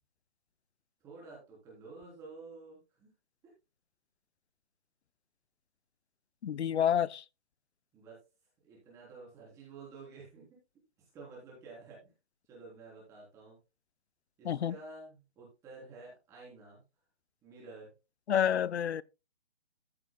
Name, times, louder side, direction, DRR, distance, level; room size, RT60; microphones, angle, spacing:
voice 1, 1.0-3.1 3.4-3.5 7.9-8.2 8.6-10.6 11.1-12.1 12.5-13.6 14.4-16.8 17.4-17.9, right 3 dB, 10° right, 3.4 m, -51 dB
voice 2, 6.4-7.2 14.4-14.7 18.3-19.0, left 9 dB, 75° left, 0.6 m, -29 dB
14.5 x 7.4 x 2.2 m
hypercardioid pair, 175°, 33 cm